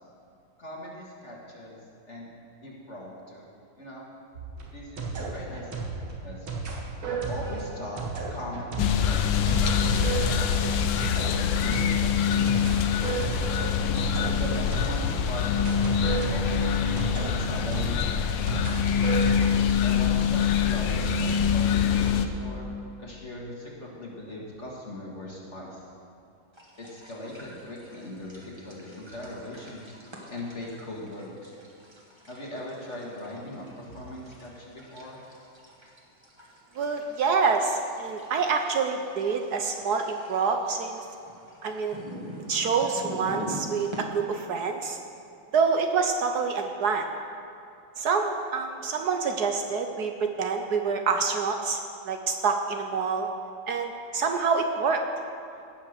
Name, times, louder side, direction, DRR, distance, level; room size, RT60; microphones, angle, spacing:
voice 1, 0.6-1.8 2.1-2.3 2.6-3.5 3.8-4.1 4.7-6.5 7.1-8.0 8.3-10.6 11.4-12.8 14.3-18.8 19.8-22.7 23.0-25.8 26.8-30.0 30.3-31.5 32.3-35.2, left 1 dB, 40° left, -3 dB, 1.8 m, -39 dB
sound 1, 4.3-15.2 15.7-19.6, right 4 dB, 80° right, 2.5 m, -33 dB
sound 2, 8.8-22.3, left 7 dB, 75° left, 1.4 m, -25 dB
sound 3, 26.5-44.0, equal, 15° right, 1.4 m, -45 dB
voice 2, 36.7-41.0 41.6-42.0 42.5-45.0 45.5-47.1 48.0-53.3 53.7-55.0, right 5 dB, 65° right, 5 dB, 1.1 m, -27 dB
17.5 x 5.9 x 6.5 m, 2.6 s
omnidirectional pair, 2.2 m